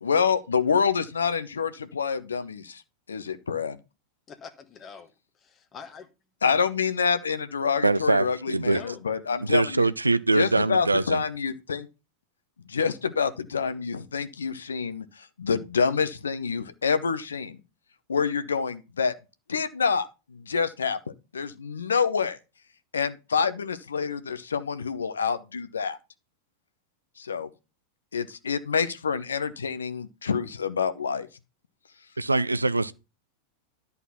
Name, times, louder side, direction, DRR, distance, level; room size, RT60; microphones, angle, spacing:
voice 1, 0.0-2.8 3.1-3.8 6.4-9.9 10.3-11.9 12.7-17.6 18.1-19.1 19.5-21.0 21.3-22.4 22.9-26.0 27.2-27.5 28.1-31.3, left 6 dB, 70° left, 0.8 m, -27 dB
voice 2, 4.3-6.1 8.7-9.0, left 6 dB, 25° left, 1.1 m, -44 dB
voice 3, 7.8-8.8 9.5-11.2 32.2-32.9, right 3 dB, 80° right, 0.5 m, -23 dB
11.0 x 4.2 x 5.7 m
figure-of-eight pair, 90°, 0 cm